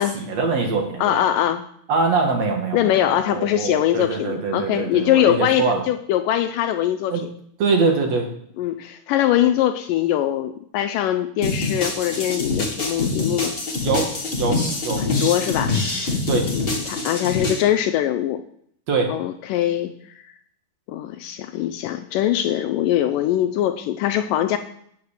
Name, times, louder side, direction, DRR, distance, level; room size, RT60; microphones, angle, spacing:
voice 1, 0.0-1.2 1.9-3.0 3.3-5.8 7.1-7.2 7.6-8.3 13.8-14.1 14.4-14.6 14.8-15.0 16.3-16.5 18.9-19.1, right 4 dB, 50° right, 2 dB, 2.6 m, -23 dB
voice 2, 1.0-1.6 2.7-7.2 8.6-13.5 15.0-15.8 16.5-18.4 19.1-19.9 20.9-24.6, left 12 dB, 80° left, 9 dB, 2.1 m, -22 dB
sound 1, 11.4-17.6, left 3 dB, 60° left, 0.6 m, -25 dB
8.7 x 8.4 x 6.6 m, 0.68 s
omnidirectional pair, 4.2 m